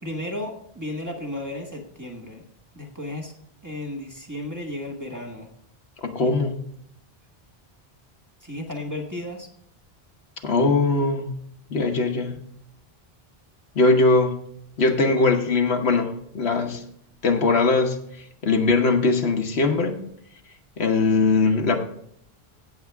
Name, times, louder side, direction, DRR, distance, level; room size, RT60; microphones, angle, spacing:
voice 1, 0.0-2.4 2.7-3.3 3.6-5.5 6.2-6.3 8.4-9.5, left 1 dB, 20° right, 1 dB, 1.5 m, -34 dB
voice 2, 6.0-6.6 10.4-11.3 11.7-12.4 13.7-14.4 14.8-16.8 17.2-18.0 18.4-20.0 20.8-21.8, left 3 dB, 85° left, 5 dB, 1.3 m, -20 dB
16.5 x 7.0 x 3.4 m, 0.72 s
omnidirectional pair, 1.1 m